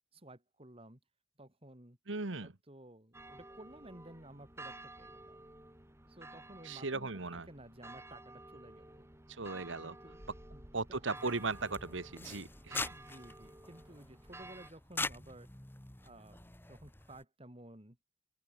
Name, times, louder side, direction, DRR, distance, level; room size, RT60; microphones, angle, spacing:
voice 1, 0.1-1.0 1.4-2.0 2.4-5.4 6.1-9.1 9.8-10.2 10.5-11.3 12.9-15.5 16.0-18.0, right 1 dB, 30° right, 3.3 m, -54 dB
voice 2, 2.1-2.5 6.6-7.5 9.3-9.9 10.7-12.9, right 3 dB, 80° right, 1.6 m, -37 dB
sound 1, 3.1-14.7, right 2 dB, 15° right, 2.8 m, -53 dB
sound 2, 11.1-17.2, left 3 dB, 10° left, 1.2 m, -44 dB
open air
head